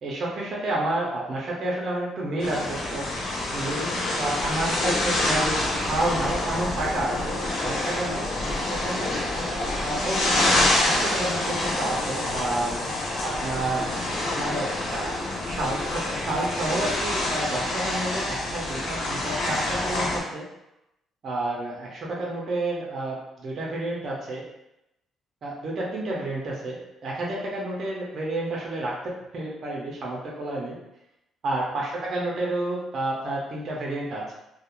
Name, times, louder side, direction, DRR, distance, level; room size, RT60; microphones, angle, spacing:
voice 1, 0.0-3.2 3.5-9.1 9.8-12.8 13.2-14.1 14.3-15.1 15.5-20.5 21.2-24.5 25.4-29.0 29.3-30.8 31.4-34.3, right 2 dB, 40° right, -3 dB, 0.5 m, -30 dB
sound 1, 2.4-20.2, left 2 dB, 75° left, 0.6 m, -27 dB
2.4 x 2.1 x 2.9 m, 0.87 s
cardioid pair, 170°, 0 cm